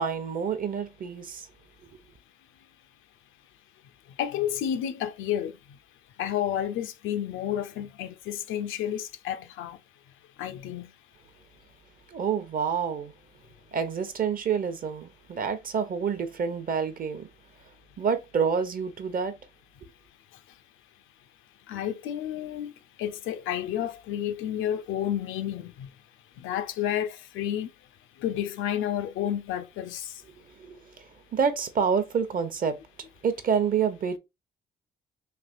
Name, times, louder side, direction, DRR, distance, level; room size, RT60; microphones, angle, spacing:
voice 1, 0.0-1.5 1.8-1.9 12.1-13.1 13.7-17.3 18.0-19.4 19.8-19.9 30.4-34.2, right 6 dB, 45° right, 0.7 m, -28 dB
voice 2, 4.2-5.5 6.2-9.8 10.4-10.9 21.7-22.7 23.0-25.9 26.4-27.7 28.2-30.1, left 10 dB, 85° left, 0.5 m, -30 dB
3.3 x 2.9 x 2.4 m
cardioid pair, 90°, 20 cm